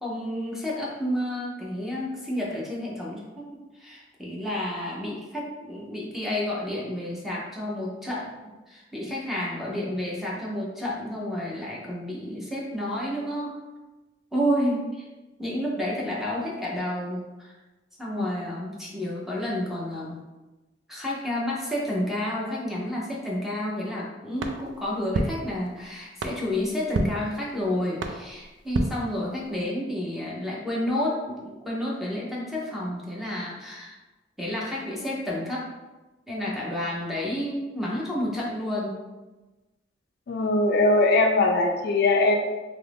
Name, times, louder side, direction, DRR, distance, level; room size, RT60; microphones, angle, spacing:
voice 1, 0.0-3.5 3.8-8.4 8.7-13.6 14.3-15.1 15.4-17.5 18.0-20.2 20.9-34.0 34.4-35.7 36.3-39.0, left 1 dB, ahead, -5 dB, 0.6 m, -30 dB
sound 1, 24.4-29.7, right 2 dB, 70° right, 0.4 m, -33 dB
voice 2, 40.3-42.3, left 2 dB, 60° left, 3 dB, 0.4 m, -20 dB
2.9 x 2.5 x 3.3 m, 1.1 s
head